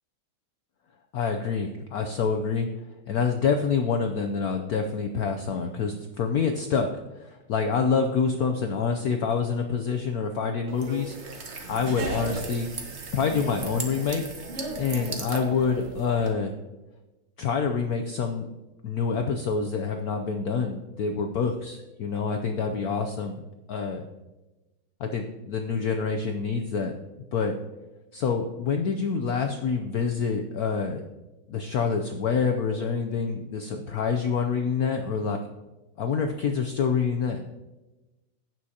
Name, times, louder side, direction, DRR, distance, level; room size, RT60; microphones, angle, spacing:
voice 1, 1.1-2.7 3.1-6.9 7.2-11.2 11.7-12.7 13.1-14.2 14.8-16.5 17.4-18.4 18.8-23.4 23.7-24.0 25.0-26.9 27.3-27.6 28.1-31.0 31.5-35.4 36.0-37.4, left 5 dB, 85° left, 5 dB, 0.8 m, -27 dB
sound 1, 10.7-16.3, right 3 dB, 45° right, 1.0 m, -35 dB
16.0 x 6.1 x 2.8 m, 1.1 s
omnidirectional pair, 2.3 m